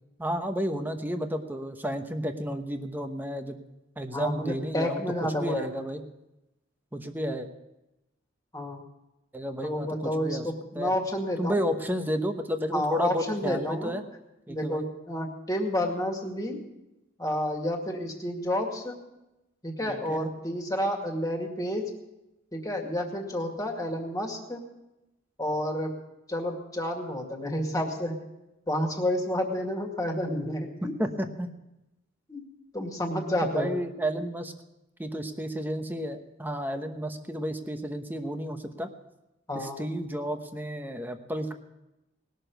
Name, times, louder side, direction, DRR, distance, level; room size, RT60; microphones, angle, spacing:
voice 1, 0.2-3.6 4.0-6.0 6.9-7.5 9.3-10.5 10.7-10.9 11.4-14.0 14.5-14.9 19.9-20.3 30.8-31.5 33.4-34.5 35.0-38.9 39.5-41.5, equal, 10° right, 6 dB, 1.0 m, -32 dB
voice 2, 4.1-5.7 8.5-8.8 9.6-11.6 12.7-13.9 14.5-16.6 17.2-19.0 19.6-21.8 22.5-24.6 25.4-25.9 26.3-28.2 28.7-30.9 32.3-32.4 32.7-33.7 39.5-39.8, left 1 dB, 20° left, 1 dB, 2.2 m, -30 dB
19.5 x 6.7 x 7.9 m, 0.94 s
head